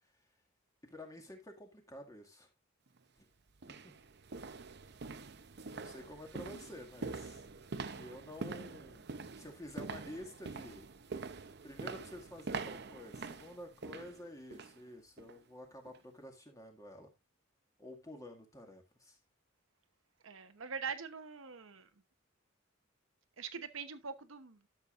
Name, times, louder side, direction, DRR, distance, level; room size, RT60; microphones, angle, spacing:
voice 1, 0.8-2.5 3.2-3.3 3.7-3.9 5.3-5.4 5.7-7.5 8.0-9.1 9.4-10.9 11.6-17.1 17.8-19.2, left 1 dB, 15° left, 2.0 m, -50 dB
sound 1, 2.9-3.0 3.6-14.8 15.2-15.4 15.9-16.0, right 4 dB, 55° right, 0.8 m, -45 dB
voice 2, 20.2-21.9 23.4-24.7, right 6 dB, 75° right, 1.0 m, -43 dB
12.0 x 7.3 x 2.5 m
head